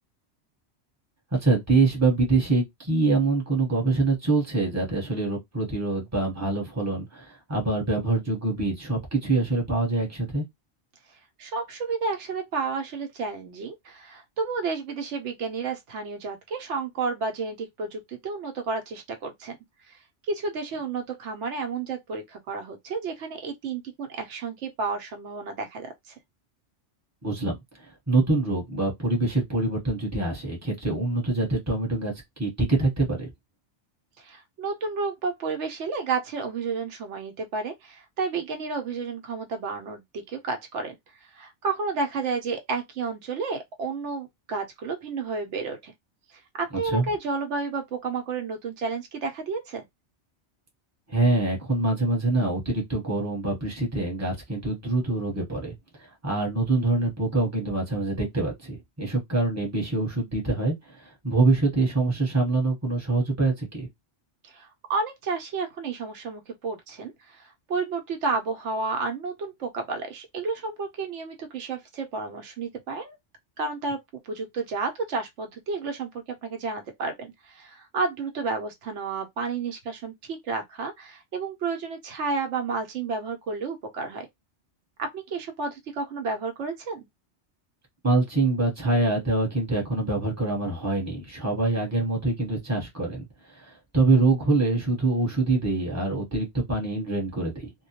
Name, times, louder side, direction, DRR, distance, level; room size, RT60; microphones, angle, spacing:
voice 1, 1.3-10.5 27.2-32.1 32.4-33.3 46.8-47.1 51.1-63.9 88.0-97.7, right 3 dB, 15° right, 1.0 m, -25 dB
voice 2, 11.4-19.6 19.9-20.0 20.3-26.2 34.2-40.9 41.2-45.9 46.3-49.8 64.4-73.2 73.6-84.3 85.0-87.1, right 4 dB, 80° right, 0.9 m, -31 dB
2.2 x 2.1 x 2.8 m
omnidirectional pair, 1.2 m